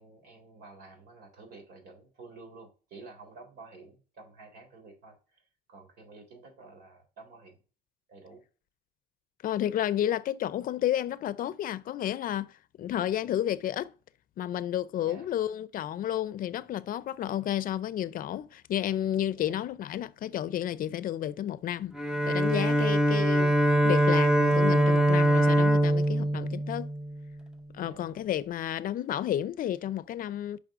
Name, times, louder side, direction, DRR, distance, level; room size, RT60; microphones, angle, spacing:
voice 1, 0.0-5.4 5.7-7.6 8.1-8.4 15.0-15.3 19.4-19.6 22.7-23.1 26.1-26.5 27.8-28.2, right 3 dB, 70° right, 3.6 m, -51 dB
voice 2, 9.4-12.5 12.8-13.9 14.4-22.0 22.3-23.6 23.8-26.9 27.7-30.6, left 11 dB, 55° left, 0.6 m, -31 dB
Bowed string instrument, 21.9-27.4, right 1 dB, 5° right, 0.7 m, -23 dB
9.0 x 5.4 x 2.5 m
cardioid pair, 110°, 17 cm